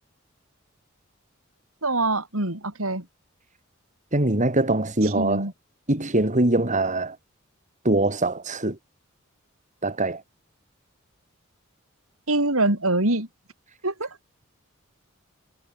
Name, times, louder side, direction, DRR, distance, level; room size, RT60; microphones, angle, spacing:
voice 1, 1.8-3.1 5.2-5.5 12.3-13.3 13.8-14.1, right 2 dB, 85° right, 5.6 m, -24 dB
voice 2, 4.1-5.5 5.9-7.2 7.8-8.8 9.8-10.2, right 2 dB, 35° right, 3.2 m, -22 dB
head